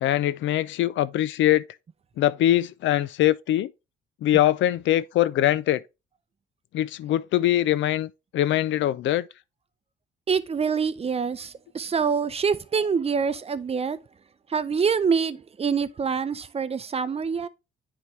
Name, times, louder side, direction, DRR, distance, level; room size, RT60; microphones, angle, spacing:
voice 1, 0.0-1.6 2.2-3.7 4.2-5.8 6.7-9.3, left 13 dB, 70° left, 0.4 m, -22 dB
voice 2, 10.3-14.0 14.5-17.5, right 6 dB, 30° right, 0.5 m, -25 dB
9.3 x 3.6 x 3.1 m
cardioid pair, 90°, 20 cm